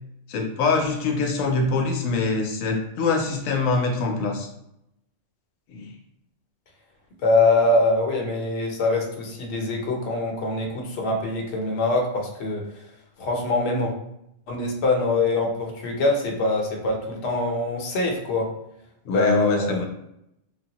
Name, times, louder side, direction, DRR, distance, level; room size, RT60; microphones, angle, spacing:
voice 1, 0.3-4.5 5.7-5.9 19.1-19.9, left 4 dB, 85° left, 2 dB, 1.0 m, -24 dB
voice 2, 7.2-12.6 13.2-13.9 14.5-18.5 19.1-19.8, left 2 dB, 60° left, 0 dB, 0.9 m, -23 dB
3.2 x 2.2 x 2.8 m, 0.79 s
omnidirectional pair, 1.3 m